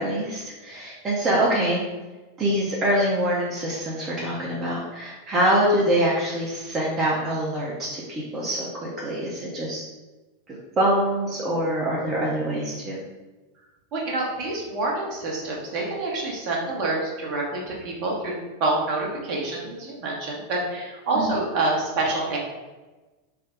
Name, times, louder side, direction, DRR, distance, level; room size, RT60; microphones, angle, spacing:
voice 1, 0.0-1.9 2.4-9.8 10.5-13.0 21.1-21.4, right 1 dB, 25° right, -5 dB, 0.6 m, -25 dB
voice 2, 13.9-18.3 18.6-22.4, right 2 dB, 45° right, -3 dB, 0.9 m, -27 dB
3.3 x 2.0 x 3.5 m, 1.2 s
figure-of-eight pair, 85°, 0 cm